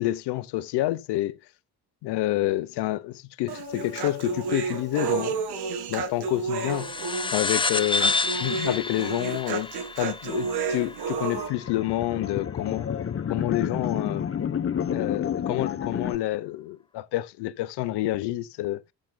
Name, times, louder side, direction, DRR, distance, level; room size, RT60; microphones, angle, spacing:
voice 1, 0.0-1.4 2.0-5.4 5.9-6.9 7.3-12.9 13.3-14.3 14.9-18.8, left 16 dB, 80° left, 0.9 m, -28 dB
Human voice, 3.5-11.5, right 5 dB, 75° right, 2.0 m, -31 dB
sound 1, 6.7-11.6, left 4 dB, 15° left, 0.4 m, -29 dB
sound 2, 11.4-16.2, left 8 dB, 35° left, 0.9 m, -30 dB
14.5 x 7.5 x 2.3 m
supercardioid pair, 70°, 40 cm